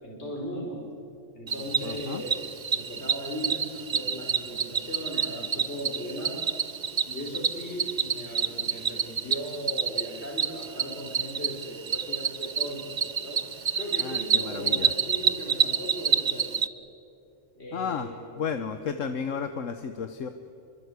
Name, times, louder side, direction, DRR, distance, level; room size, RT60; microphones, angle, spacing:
voice 1, 0.0-0.9 1.3-6.5 7.1-16.5 17.6-18.3 18.8-19.0, equal, 55° left, -1 dB, 4.3 m, -37 dB
Cricket, 1.5-16.7, right 7 dB, 40° right, 0.7 m, -28 dB
voice 2, 1.8-2.2 14.0-14.9 17.7-18.1 18.4-20.3, left 6 dB, 75° left, 8 dB, 1.4 m, -33 dB
27.0 x 23.5 x 8.2 m, 2.6 s
omnidirectional pair, 1.3 m